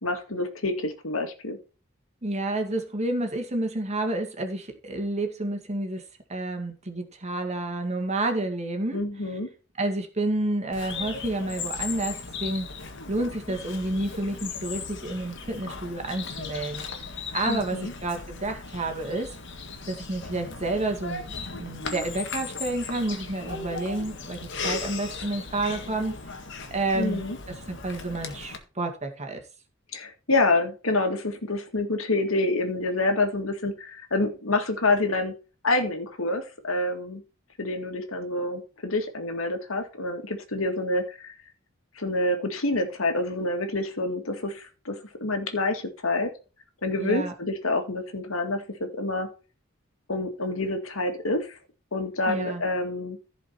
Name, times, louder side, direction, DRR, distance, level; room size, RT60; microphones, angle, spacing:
voice 1, 0.0-1.6 8.9-9.5 17.5-17.9 26.9-27.4 29.9-35.3 35.6-37.2 37.6-41.3 42.0-46.3 46.8-49.3 50.1-51.6 51.9-53.2, left 2 dB, 85° left, 2.2 m, -27 dB
voice 2, 2.2-6.0 6.3-9.0 9.8-12.7 13.1-16.8 17.3-19.4 19.9-26.3 26.7-29.4 47.0-47.3 52.3-52.6, right 2 dB, 35° right, 2.1 m, -30 dB
Bird vocalization bird call bird song, 10.7-28.6, left 4 dB, 60° left, 1.8 m, -37 dB
15.0 x 5.1 x 4.4 m
head